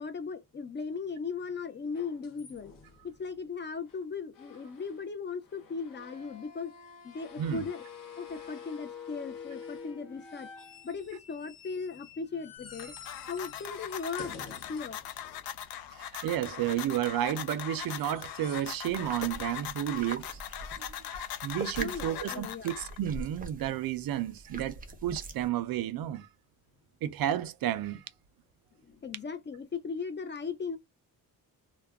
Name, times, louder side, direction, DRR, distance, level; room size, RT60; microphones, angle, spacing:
voice 1, 0.0-2.7 3.0-6.7 7.0-7.8 8.2-10.5 10.8-13.0 13.3-14.3 14.7-15.0 21.8-22.8 28.8-30.8, left 5 dB, 30° left, 0.4 m, -37 dB
sound 1, 1.9-3.2 3.9-4.0 4.3-5.1 5.4-15.7 17.7-18.8 19.1-19.4 21.2-21.3, left 6 dB, 65° left, 0.8 m, -48 dB
voice 2, 7.4-7.7 16.0-20.4 20.8-26.3 27.0-28.0, right 11 dB, 70° right, 0.5 m, -32 dB
sound 2, 12.6-23.2, left 10 dB, 90° left, 0.5 m, -41 dB
sound 3, 18.9-25.5, right 2 dB, 25° right, 0.5 m, -43 dB
2.3 x 2.1 x 3.3 m
cardioid pair, 130°, 36 cm